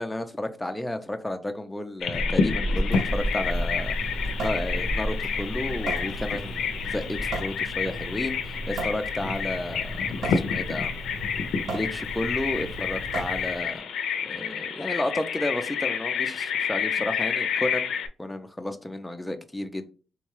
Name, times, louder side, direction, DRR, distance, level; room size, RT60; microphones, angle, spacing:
voice 1, 0.0-4.0 4.4-10.9 11.7-13.8 14.2-17.9 18.2-19.9, left 1 dB, 5° left, 0.4 m, -32 dB
Bird vocalization bird call bird song, 2.0-18.1, left 6 dB, 85° left, 0.4 m, -29 dB
Child speech kid speaking, 2.1-7.4, equal, 85° right, 1.7 m, -31 dB
Water tap faucet / Sink (filling or washing) / Drip, 2.8-13.8, right 2 dB, 55° right, 0.9 m, -37 dB
3.8 x 2.2 x 3.0 m
wide cardioid pair, 160°, 0 cm